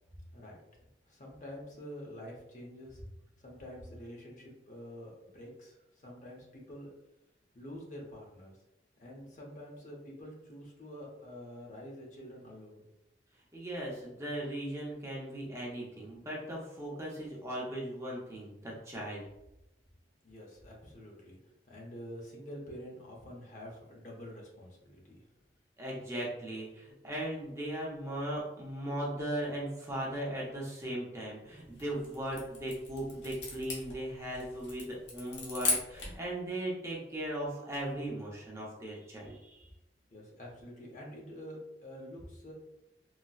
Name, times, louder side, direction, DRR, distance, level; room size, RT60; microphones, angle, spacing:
voice 1, 1.1-3.0 3.4-5.8 6.0-6.9 7.5-8.6 9.0-12.8 20.2-21.4 21.7-25.2 40.1-42.5, equal, 45° left, -2 dB, 0.7 m, -47 dB
voice 2, 13.5-19.2 25.8-39.7, right 1 dB, 15° right, -4 dB, 0.6 m, -38 dB
sound 1, 31.6-36.3, left 3 dB, 80° left, 0.9 m, -38 dB
4.0 x 2.1 x 2.3 m, 0.90 s
head